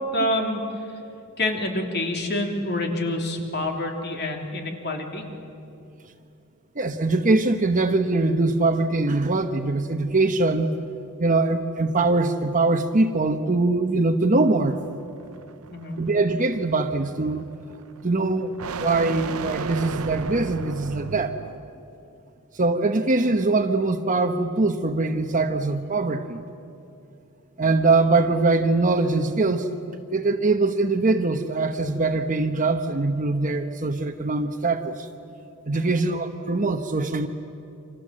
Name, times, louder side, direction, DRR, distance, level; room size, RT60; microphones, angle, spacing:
voice 1, 0.1-0.6 1.4-5.2 15.7-16.0 35.7-36.0, left 1 dB, 50° left, 2 dB, 3.3 m, -27 dB
voice 2, 6.8-10.7 11.2-14.8 16.0-17.4 18.0-21.4 22.5-26.4 27.6-29.7 30.1-35.1 35.7-37.3, right 3 dB, 35° right, 6 dB, 1.0 m, -22 dB
sound 1, 14.7-21.8, right 5 dB, 70° right, 0.7 m, -35 dB
29.5 x 25.5 x 7.7 m, 2.6 s
head